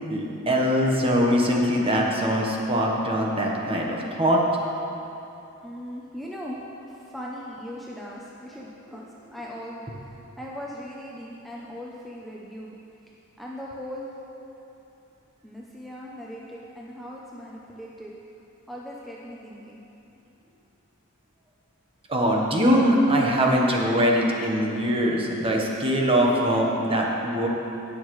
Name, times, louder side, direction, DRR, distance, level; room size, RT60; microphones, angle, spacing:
voice 1, 0.1-4.4 22.1-27.5, equal, 25° right, -1 dB, 1.1 m, -22 dB
voice 2, 5.6-6.6 6.9-9.0 9.3-9.8 10.4-12.7 13.4-14.1 15.4-18.1 18.7-19.8, equal, ahead, -5 dB, 0.6 m, -39 dB
18.0 x 6.4 x 3.2 m, 2.9 s
head